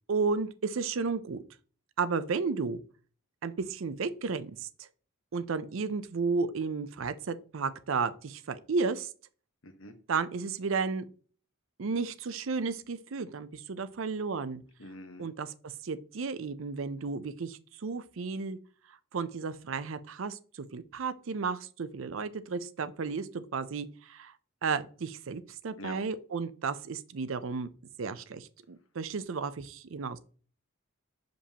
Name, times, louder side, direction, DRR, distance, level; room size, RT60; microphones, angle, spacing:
voice 1, 0.1-1.4 2.0-2.8 3.4-4.9 5.3-9.1 10.1-11.1 11.8-14.6 15.2-15.5 15.8-18.6 19.1-24.3 24.6-27.7 28.0-30.2, right 4 dB, 75° right, 0.5 m, -33 dB
voice 2, 9.6-9.9 14.8-15.3 25.8-26.0, left 1 dB, 75° left, 1.1 m, -44 dB
6.7 x 5.2 x 2.9 m
head